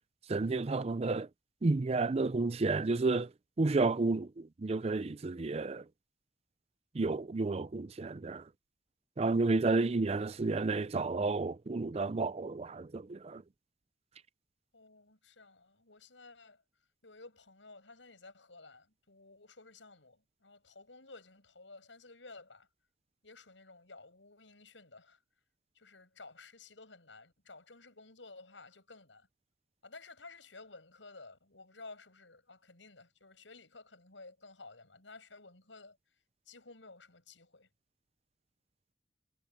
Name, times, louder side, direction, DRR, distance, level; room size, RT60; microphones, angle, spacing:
voice 1, 0.3-1.3 1.6-3.3 3.6-5.8 6.9-8.4 9.2-13.4, right 3 dB, 35° right, 0.5 m, -31 dB
voice 2, 14.7-16.6 17.0-22.7 23.2-25.2 25.7-29.3 29.8-36.0 36.5-37.7, left 3 dB, 90° left, 7.7 m, -54 dB
head